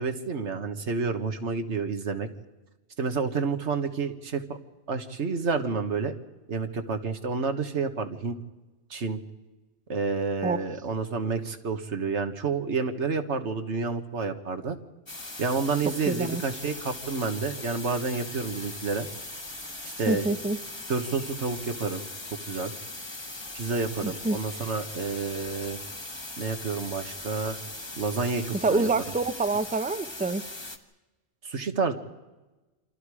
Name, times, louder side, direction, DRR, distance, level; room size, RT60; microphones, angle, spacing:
voice 1, 0.0-2.3 3.0-4.6 4.9-6.1 6.5-8.4 8.9-9.2 9.9-14.8 15.4-19.1 19.8-20.3 20.9-22.0 22.3-22.7 23.5-25.8 26.4-27.6 28.0-28.9 31.4-31.9, right 4 dB, 85° right, 7 dB, 1.8 m, -29 dB
sound 1, 15.1-30.8, left 2 dB, 25° left, 1.4 m, -40 dB
voice 2, 16.1-16.4 20.1-20.6 24.0-24.4 28.6-30.4, right 3 dB, 10° right, 11 dB, 0.7 m, -26 dB
28.5 x 25.0 x 4.9 m, 1.1 s
omnidirectional pair, 1.1 m